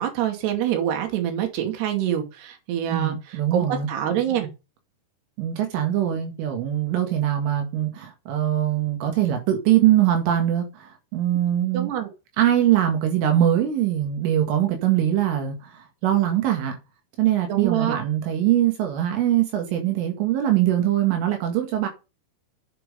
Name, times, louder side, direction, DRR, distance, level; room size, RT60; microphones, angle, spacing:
voice 1, 0.0-3.2 3.5-4.5 11.7-12.1 17.5-18.0, right 10 dB, 60° right, 4.0 m, -25 dB
voice 2, 2.9-3.9 5.4-11.9 12.4-16.8 17.2-21.9, right 11 dB, 80° right, 4.3 m, -22 dB
8.0 x 7.5 x 5.4 m
omnidirectional pair, 5.6 m